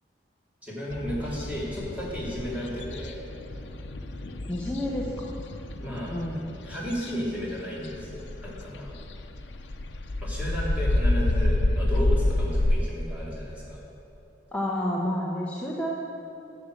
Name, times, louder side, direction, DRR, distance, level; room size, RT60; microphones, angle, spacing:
voice 1, 0.6-3.2 5.8-6.2 6.6-8.9 10.2-13.8, equal, 10° right, -6 dB, 3.1 m, -34 dB
sound 1, 0.9-12.8, left 1 dB, 90° left, 0.8 m, -29 dB
voice 2, 4.4-5.3 6.1-6.4 14.5-15.9, left 1 dB, 10° left, -4 dB, 1.1 m, -29 dB
11.5 x 7.4 x 7.9 m, 2.8 s
head